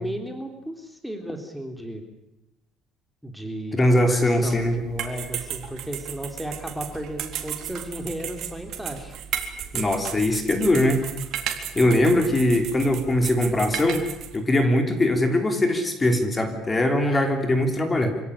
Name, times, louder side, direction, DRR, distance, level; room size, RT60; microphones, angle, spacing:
voice 1, 0.0-2.0 3.2-9.2, right 1 dB, ahead, 4 dB, 3.3 m, -34 dB
voice 2, 3.7-4.8 9.7-11.0 11.7-14.0 14.3-18.2, left 1 dB, 20° left, 6 dB, 3.4 m, -21 dB
sound 1, 4.4-14.4, right 9 dB, 60° right, 3.8 m, -34 dB
26.5 x 17.0 x 9.9 m, 0.88 s
cardioid pair, 125°, 0 cm